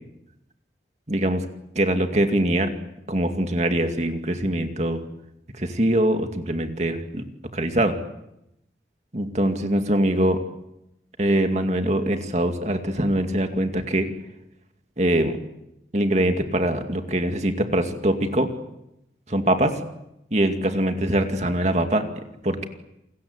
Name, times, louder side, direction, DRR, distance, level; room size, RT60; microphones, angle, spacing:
voice 1, 1.1-1.4 1.8-2.7 3.1-5.0 5.6-7.2 7.5-8.0 9.1-10.4 11.2-14.1 15.0-15.4 15.9-18.5 19.3-19.7 20.3-22.0 22.4-22.7, right 1 dB, 40° right, 6 dB, 2.4 m, -23 dB
29.5 x 21.5 x 8.2 m, 0.84 s
head